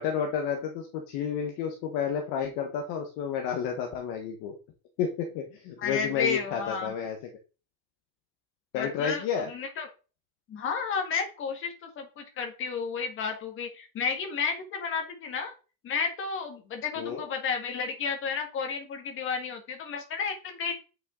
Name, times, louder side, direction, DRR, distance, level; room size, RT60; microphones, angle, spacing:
voice 1, 0.0-4.5 5.0-7.2 8.7-9.5 17.0-17.3, left 7 dB, 40° left, 3 dB, 1.3 m, -31 dB
voice 2, 5.8-6.9 8.7-9.9 10.5-15.5 15.8-20.7, left 5 dB, 25° left, 4 dB, 1.8 m, -32 dB
8.8 x 5.7 x 3.8 m, 0.34 s
cardioid pair, 170°, 48 cm